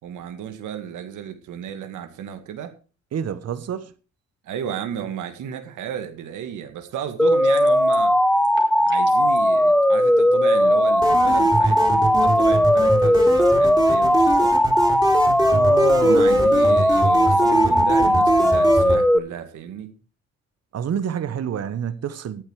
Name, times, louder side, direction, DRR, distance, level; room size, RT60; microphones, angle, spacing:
voice 1, 0.0-2.7 4.5-8.2 8.8-14.5 16.0-19.9, right 9 dB, 80° right, 2.2 m, -33 dB
voice 2, 3.1-3.9 15.5-16.5 20.7-22.4, right 8 dB, 55° right, 1.2 m, -28 dB
sound 1, 7.2-19.2, equal, ahead, 0.8 m, -18 dB
sound 2, 7.4-8.1 8.4-9.4, right 5 dB, 40° right, 4.7 m, -44 dB
sound 3, 11.0-19.0, right 2 dB, 15° right, 3.4 m, -24 dB
13.5 x 8.8 x 4.8 m
cardioid pair, 90°, 30 cm